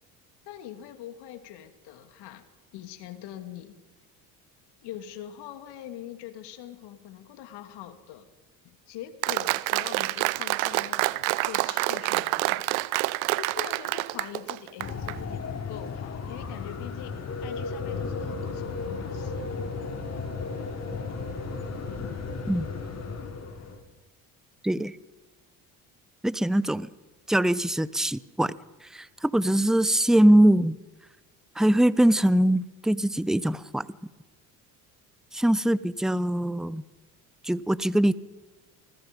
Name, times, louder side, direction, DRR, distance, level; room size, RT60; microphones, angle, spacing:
voice 1, 0.5-2.5 2.7-3.7 4.8-8.3 8.6-19.6, left 11 dB, 70° left, 9 dB, 2.8 m, -43 dB
Applause, 9.2-15.1, right 21 dB, 85° right, 0.8 m, -27 dB
sound 1, 14.8-23.8, left 4 dB, 40° left, 5.5 m, -34 dB
voice 2, 24.6-25.0 26.2-26.9 27.3-28.5 28.8-30.8 31.6-33.9 35.3-36.8 37.4-38.1, right 1 dB, ahead, 18 dB, 0.9 m, -22 dB
25.5 x 20.5 x 5.4 m, 1.2 s
supercardioid pair, 75°, 41 cm